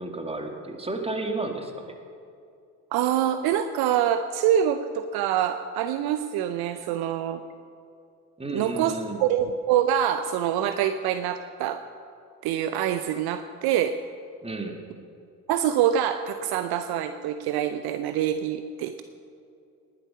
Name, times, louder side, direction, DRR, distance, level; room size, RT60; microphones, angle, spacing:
voice 1, 0.0-1.9 8.4-9.2 14.4-14.8, right 2 dB, 15° right, 3 dB, 2.0 m, -32 dB
voice 2, 2.9-7.4 8.5-8.9 9.2-11.8 12.4-13.9 15.5-19.0, right 10 dB, 55° right, 10 dB, 0.7 m, -25 dB
19.0 x 8.1 x 5.6 m, 2.5 s
hypercardioid pair, 55°, 46 cm